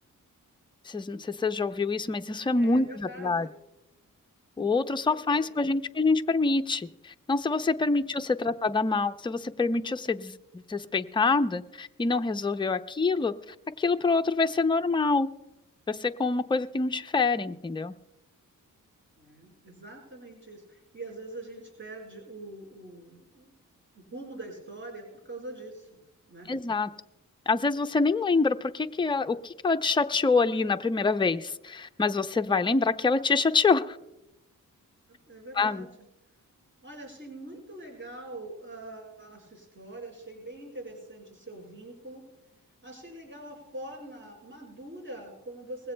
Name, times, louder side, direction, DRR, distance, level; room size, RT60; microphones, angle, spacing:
voice 1, 0.9-3.5 4.6-10.4 10.7-13.3 13.8-15.3 15.9-17.9 26.5-26.9 27.5-34.0 35.5-35.9, left 4 dB, 15° left, 7 dB, 0.5 m, -26 dB
voice 2, 2.6-3.5 5.0-5.5 7.8-8.0 19.2-23.5 23.9-25.9 26.3-26.5 35.1-35.9 36.8-42.2 42.8-45.9, right 2 dB, 35° right, -1 dB, 4.6 m, -43 dB
20.5 x 16.0 x 2.2 m, 0.92 s
cardioid pair, 75°, 33 cm